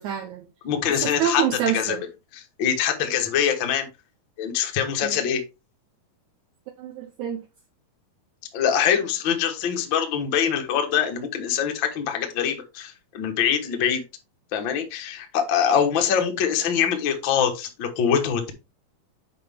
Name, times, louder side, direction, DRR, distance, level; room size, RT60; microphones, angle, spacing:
voice 1, 0.0-0.5 0.9-2.0 5.0-5.2 6.8-7.4, right 9 dB, 80° right, 1.7 m, -27 dB
voice 2, 0.6-1.4 1.7-2.0 2.3-3.9 4.4-5.4 8.5-14.0 14.5-18.5, left 8 dB, 70° left, 1.1 m, -24 dB
7.8 x 5.3 x 3.4 m
omnidirectional pair, 4.3 m